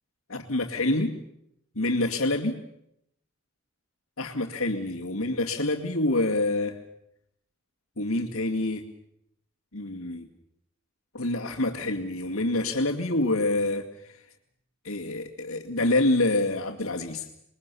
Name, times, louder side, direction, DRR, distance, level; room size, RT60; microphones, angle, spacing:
voice 1, 0.3-1.2 1.8-2.6 4.2-6.8 8.0-8.8 9.7-10.3 11.1-13.9 14.8-17.3, left 2 dB, 75° left, -4 dB, 2.3 m, -26 dB
27.5 x 22.0 x 7.1 m, 0.78 s
head